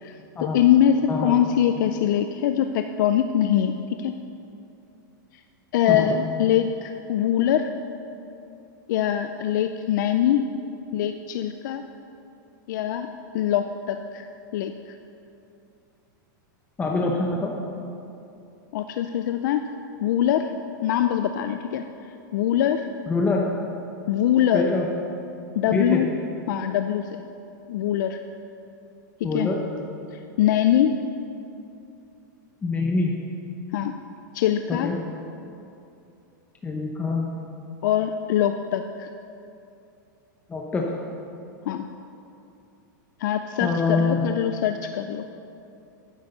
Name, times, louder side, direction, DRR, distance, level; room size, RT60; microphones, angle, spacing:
voice 1, 0.0-4.2 5.7-7.7 8.9-10.4 10.9-11.8 12.7-13.1 13.3-14.3 14.5-14.9 18.7-19.6 20.0-20.5 20.8-21.8 22.3-22.9 24.1-24.7 25.6-26.1 26.5-27.1 27.7-28.2 29.3-29.5 30.4-31.0 33.7-33.9 34.3-34.9 37.8-39.1 41.7-41.9 43.2-45.2, left 10 dB, 70° left, 7 dB, 0.5 m, -23 dB
voice 2, 16.8-17.5 23.1-23.4 24.5-24.9 25.7-26.0 29.2-29.6 32.6-33.1 34.7-35.0 36.6-37.3 40.5-40.9 43.6-44.3, left 3 dB, 15° left, -1 dB, 0.9 m, -24 dB
9.7 x 8.9 x 6.7 m, 2.7 s
supercardioid pair, 145°, 11 cm